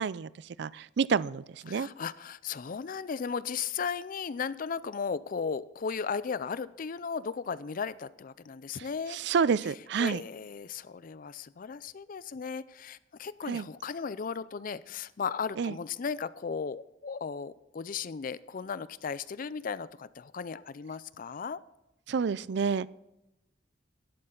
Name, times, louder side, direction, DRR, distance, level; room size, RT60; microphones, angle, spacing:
voice 1, 0.0-1.9 9.1-10.2 13.5-13.7 15.6-15.7 22.1-22.9, right 6 dB, 65° right, 20 dB, 0.4 m, -29 dB
voice 2, 1.7-9.2 10.0-21.6, left 6 dB, 45° left, 17 dB, 0.4 m, -36 dB
12.0 x 11.5 x 3.9 m, 0.91 s
head